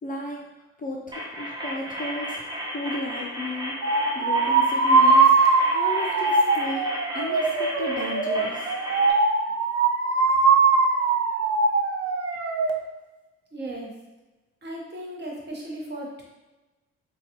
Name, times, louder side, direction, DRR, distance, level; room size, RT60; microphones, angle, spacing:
voice 1, 0.0-0.4 0.8-2.4 2.7-3.8 4.1-5.4 5.7-6.9 7.1-8.7, left 2 dB, 30° left, -1 dB, 0.5 m, -33 dB
sound 1, 1.1-9.1, equal, 15° right, 0.7 m, -34 dB
sound 2, 3.8-12.7, right 4 dB, 50° right, 0.5 m, -21 dB
voice 2, 13.5-13.9 14.6-16.2, right 1 dB, 35° right, -2 dB, 1.0 m, -36 dB
3.9 x 2.3 x 2.8 m, 1.1 s
cardioid pair, 90°, 30 cm